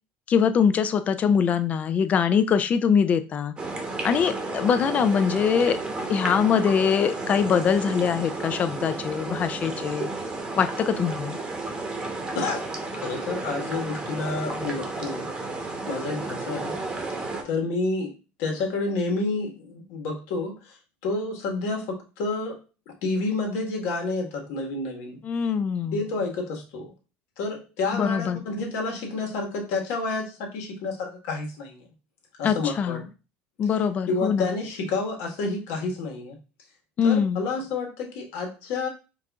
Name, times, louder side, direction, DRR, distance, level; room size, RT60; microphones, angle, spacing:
voice 1, 0.3-3.5 4.0-5.8 6.1-10.1 10.6-11.4 25.2-26.0 27.9-28.4 32.4-33.0 33.6-34.5 37.0-37.4, left 7 dB, 35° left, 11 dB, 0.4 m, -23 dB
sound 1, 3.6-17.4, right 3 dB, 20° right, 0.9 m, -32 dB
voice 2, 12.3-15.3 15.9-16.7 17.4-22.6 22.9-25.2 25.9-26.9 27.4-31.8 32.4-33.0 34.1-36.4 37.0-38.9, left 3 dB, 75° left, 1 dB, 1.5 m, -29 dB
4.7 x 2.5 x 3.5 m, 0.31 s
cardioid pair, 130°, 4 cm